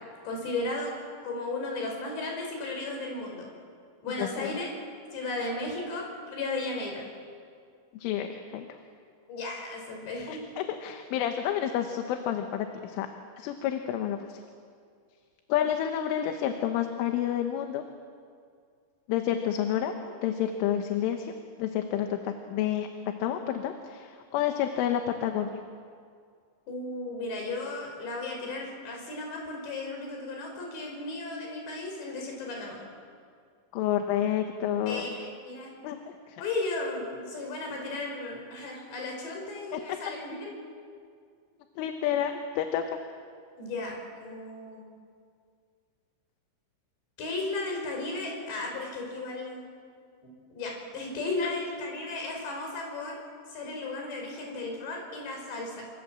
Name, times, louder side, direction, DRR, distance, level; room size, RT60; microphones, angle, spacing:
voice 1, 0.2-0.9 1.2-3.5 4.0-4.7 5.1-7.0 9.3-10.4 20.0-20.2 26.7-32.8 34.9-35.7 36.4-40.5 43.6-44.8 47.2-49.7 50.2-53.2 53.5-55.8, left 2 dB, 60° left, 1 dB, 7.1 m, -35 dB
voice 2, 4.2-4.5 7.9-8.7 10.3-13.1 13.4-14.4 15.5-17.8 19.1-19.9 20.2-21.3 21.6-22.9 23.2-25.6 33.7-35.2 35.8-36.0 36.3-36.4 39.7-40.0 41.8-42.8, left 10 dB, 80° left, 6 dB, 3.6 m, -29 dB
26.0 x 25.5 x 7.6 m, 2.2 s
omnidirectional pair, 5.7 m